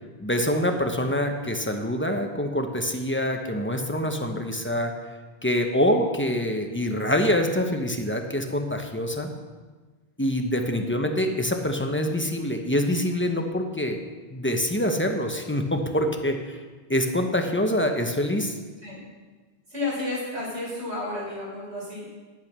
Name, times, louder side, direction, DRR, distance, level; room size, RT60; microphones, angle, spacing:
voice 1, 0.2-4.9 5.4-9.3 10.2-14.0 14.3-16.6 16.9-18.6, left 1 dB, 10° left, 4 dB, 0.8 m, -25 dB
voice 2, 19.7-22.0, left 2 dB, 80° right, -5 dB, 4.9 m, -31 dB
10.5 x 8.3 x 6.1 m, 1.4 s
omnidirectional pair, 1.1 m